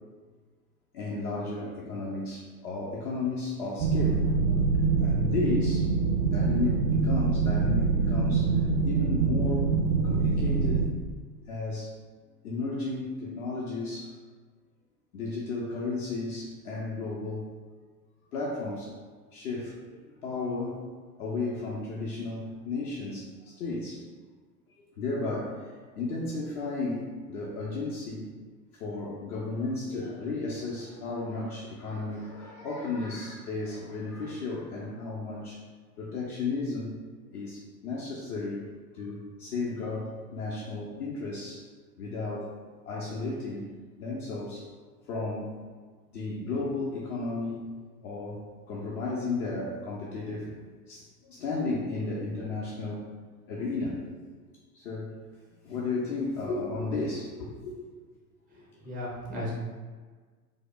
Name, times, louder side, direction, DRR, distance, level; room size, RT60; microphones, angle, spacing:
voice 1, 0.9-5.9 6.2-8.5 8.8-9.7 10.0-10.8 11.5-12.0 12.4-14.2 15.1-17.5 18.3-18.9 19.3-20.8 21.2-24.1 24.8-28.3 28.8-35.6 36.0-37.0 37.3-38.7 38.9-41.7 42.0-42.5 42.8-43.7 44.0-44.7 45.1-45.6 46.1-47.6 48.0-50.6 50.9-53.1 53.5-54.0 54.7-55.2 55.6-57.9, left 3 dB, 60° left, -4 dB, 0.7 m, -34 dB
sound 1, 3.8-10.9, right 4 dB, 80° right, 0.6 m, -25 dB
voice 2, 58.5-59.5, left 1 dB, ahead, -6 dB, 0.3 m, -36 dB
4.8 x 2.1 x 2.2 m, 1.4 s
figure-of-eight pair, 90°, 50 cm